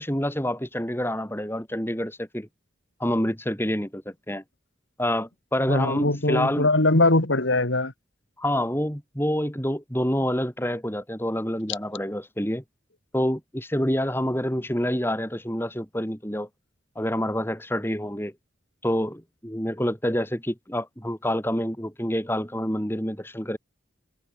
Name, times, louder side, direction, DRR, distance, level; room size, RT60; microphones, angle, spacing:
voice 1, 0.0-2.5 3.0-4.4 5.0-6.7 8.4-12.6 13.1-16.5 17.0-18.3 18.8-23.6, equal, 10° left, 4.4 m, -27 dB
voice 2, 5.7-7.9, left 2 dB, 70° left, 2.6 m, -21 dB
head